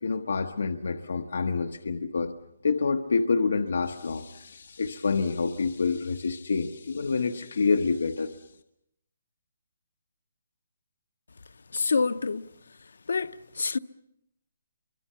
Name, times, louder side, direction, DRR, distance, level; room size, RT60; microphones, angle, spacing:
voice 1, 0.0-2.3 2.6-8.5, left 4 dB, 75° left, 1.1 m, -27 dB
voice 2, 11.7-12.5 13.1-13.8, left 4 dB, 90° left, 0.8 m, -27 dB
28.5 x 24.0 x 5.8 m
hypercardioid pair, 180°, 0 cm